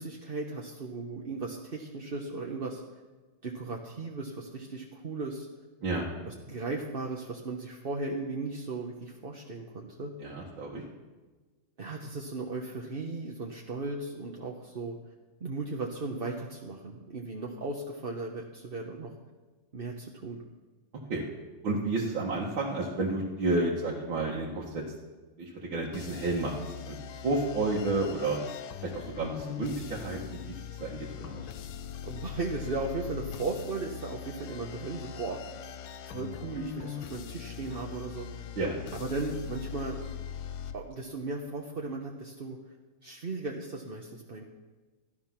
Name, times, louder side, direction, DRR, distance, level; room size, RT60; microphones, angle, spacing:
voice 1, 0.0-2.8 3.4-5.5 6.3-10.1 11.8-15.0 15.4-19.1 19.7-20.4 32.0-35.6 36.1-38.5 38.9-40.0 40.7-42.7 43.0-44.4, right 3 dB, 35° right, 0 dB, 1.0 m, -36 dB
voice 2, 10.2-10.8 21.1-21.2 21.6-24.8 25.4-27.0 27.2-28.4 28.8-31.5 38.6-38.8, right 2 dB, 80° right, -4 dB, 2.4 m, -31 dB
sound 1, 25.9-40.7, left 8 dB, 80° left, 1.5 m, -41 dB
15.0 x 11.5 x 5.9 m, 1.3 s
omnidirectional pair, 2.1 m